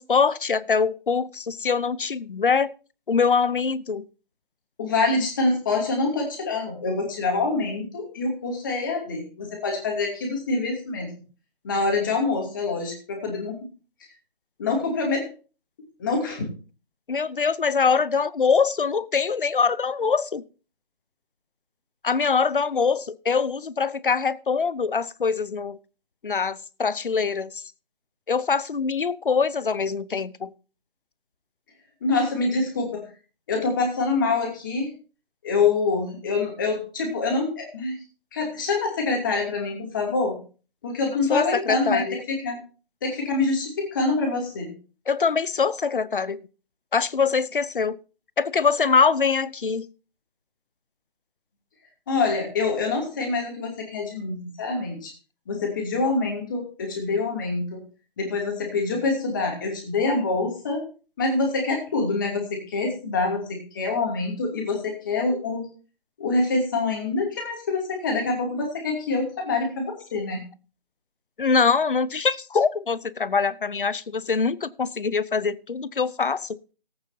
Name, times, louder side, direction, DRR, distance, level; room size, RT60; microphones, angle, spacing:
voice 1, 0.0-2.7 3.1-4.0 17.1-20.4 22.0-25.8 26.2-27.6 28.3-30.5 41.3-42.2 45.1-46.4 46.9-48.0 48.4-49.9 71.4-76.6, left 5 dB, 60° left, 0.7 m, -23 dB
voice 2, 4.8-11.1 11.6-13.7 14.0-14.1 14.6-15.3 16.0-16.5 32.0-33.0 33.5-35.0 35.4-38.0 38.3-40.4 40.8-42.6 43.0-44.7 52.1-55.1 55.5-57.8 58.2-60.9 61.2-65.7 66.2-70.4, left 3 dB, 20° left, 2.6 m, -25 dB
19.0 x 8.8 x 2.8 m
figure-of-eight pair, 165°, 30 cm